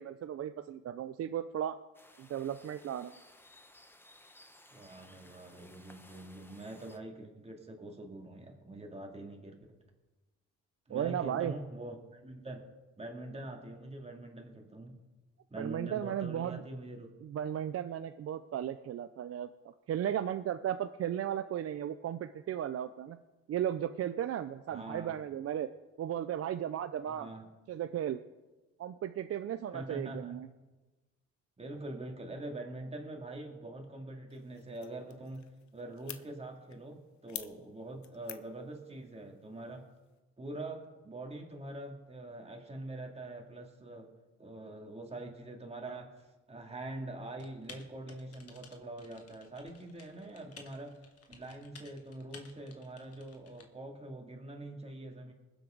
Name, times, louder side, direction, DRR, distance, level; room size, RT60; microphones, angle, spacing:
voice 1, 0.0-1.8 2.2-3.1 10.9-11.5 15.6-16.6 17.2-19.5 19.9-23.2 23.5-25.7 26.0-27.3 27.7-28.2 28.8-30.5, right 10 dB, 50° right, 10 dB, 0.5 m, -35 dB
sound 1, 1.9-7.0, left 1 dB, 5° left, 1.0 m, -59 dB
voice 2, 4.7-9.6 10.9-12.7 13.0-14.9 15.5-17.1 24.7-25.1 27.1-27.4 29.7-30.4 31.6-35.4 35.7-39.8 40.4-44.1 44.4-51.0 51.3-55.3, right 2 dB, 20° right, 1 dB, 2.7 m, -44 dB
sound 2, 34.3-40.2, left 11 dB, 70° left, 0.9 m, -51 dB
Typing, 47.4-53.6, left 5 dB, 55° left, 1.7 m, -55 dB
21.0 x 7.9 x 3.9 m, 1.2 s
cardioid pair, 90°, 30 cm